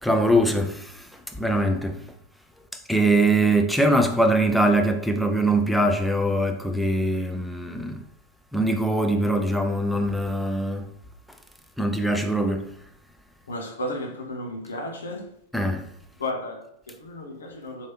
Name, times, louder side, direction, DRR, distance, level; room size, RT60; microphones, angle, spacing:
voice 1, 0.0-2.0 2.7-8.0 8.5-10.9 11.8-12.8 15.5-15.9, right 1 dB, ahead, 0.4 m, -22 dB
voice 2, 13.5-15.3 16.2-17.9, left 1 dB, 70° left, 0.8 m, -33 dB
3.1 x 2.8 x 4.4 m
figure-of-eight pair, 90°, 0 cm